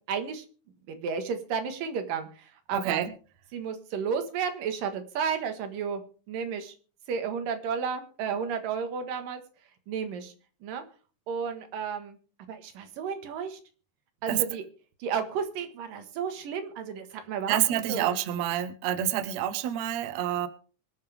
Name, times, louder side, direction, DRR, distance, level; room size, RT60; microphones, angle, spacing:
voice 1, 0.1-0.4 0.9-3.1 3.5-6.0 6.3-6.7 7.1-9.4 9.9-10.3 10.6-10.8 11.3-12.2 12.5-13.6 14.2-14.6 15.0-18.1, right 6 dB, 90° right, 8 dB, 3.3 m, -32 dB
voice 2, 2.7-3.1 14.3-14.4 17.5-20.5, right 11 dB, 65° right, 12 dB, 2.0 m, -28 dB
24.5 x 8.7 x 3.4 m, 0.38 s
omnidirectional pair, 3.8 m